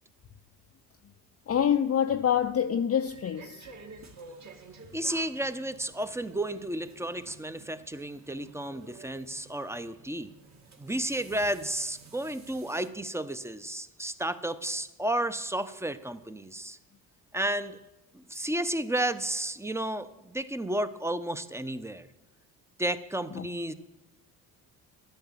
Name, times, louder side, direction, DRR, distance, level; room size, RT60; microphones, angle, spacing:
voice 1, 1.5-3.7 23.3-23.5, left 9 dB, 30° left, 0.7 m, -26 dB
sound 1, 3.1-12.9, right 4 dB, 35° right, 2.2 m, -51 dB
voice 2, 4.9-10.3 10.8-16.8 17.3-17.8 18.1-22.1 22.8-23.7, right 1 dB, 5° right, 0.9 m, -32 dB
12.5 x 9.0 x 7.5 m
hypercardioid pair, 55°, 44 cm